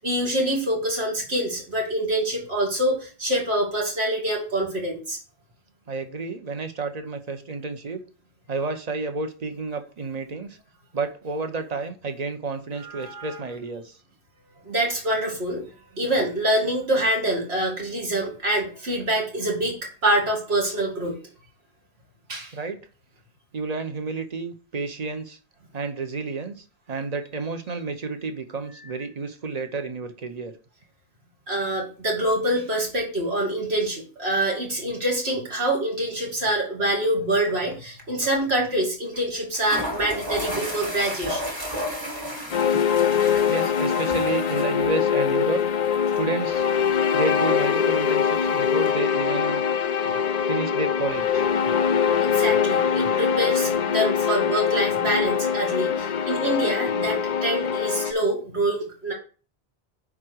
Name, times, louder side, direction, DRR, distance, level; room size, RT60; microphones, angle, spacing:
voice 1, 0.0-5.2 12.8-13.4 14.6-15.6 15.9-21.2 22.3-22.6 28.8-28.9 31.5-41.6 52.2-59.1, right 1 dB, 75° right, -1 dB, 2.5 m, -25 dB
voice 2, 5.9-8.0 8.5-10.6 10.9-14.0 22.5-22.8 23.5-25.4 25.7-30.5 43.5-45.6 46.1-46.7 47.1-49.6 50.5-51.5, right 3 dB, 40° right, 7 dB, 0.9 m, -30 dB
sound 1, 37.5-37.7 38.0-38.1 39.1-39.2 39.5-48.9, equal, 20° right, 1.7 m, -35 dB
sound 2, 42.5-58.1, left 7 dB, 50° left, 0.5 m, -23 dB
9.5 x 3.7 x 4.7 m, 0.38 s
omnidirectional pair, 1.1 m